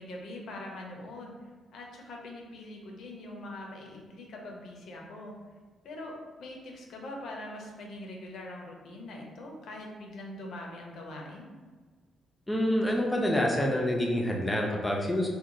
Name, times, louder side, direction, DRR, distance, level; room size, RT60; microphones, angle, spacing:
voice 1, 0.0-1.3 1.7-5.3 5.8-11.5, left 1 dB, 70° left, 0 dB, 0.5 m, -43 dB
voice 2, 12.5-15.3, left 1 dB, 10° left, -1 dB, 0.4 m, -27 dB
2.9 x 2.1 x 2.6 m, 1.4 s
cardioid pair, 140°, 0 cm